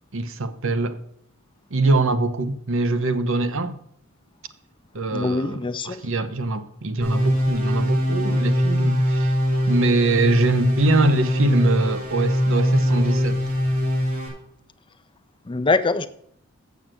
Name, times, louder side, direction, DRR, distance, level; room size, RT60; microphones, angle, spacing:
voice 1, 0.1-1.0 1.7-3.8 4.9-9.3 9.7-13.4, right 2 dB, 60° right, 0.9 m, -23 dB
voice 2, 5.1-6.0 15.5-16.1, left 3 dB, 20° left, 0.5 m, -23 dB
sound 1, 7.0-14.3, equal, 75° right, 4.0 m, -22 dB
7.9 x 7.1 x 7.6 m
head